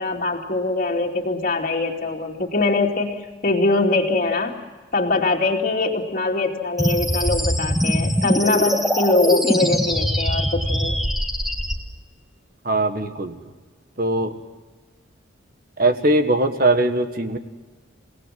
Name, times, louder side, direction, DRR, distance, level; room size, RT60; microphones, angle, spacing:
voice 1, 0.0-4.5 4.9-11.0, left 3 dB, 40° left, -5 dB, 2.6 m, -22 dB
sound 1, 6.8-11.7, equal, ahead, 1.7 m, -22 dB
voice 2, 12.6-13.3 14.0-14.3 15.8-17.4, right 2 dB, 45° right, 7 dB, 1.6 m, -20 dB
30.0 x 18.5 x 7.7 m, 1.3 s
head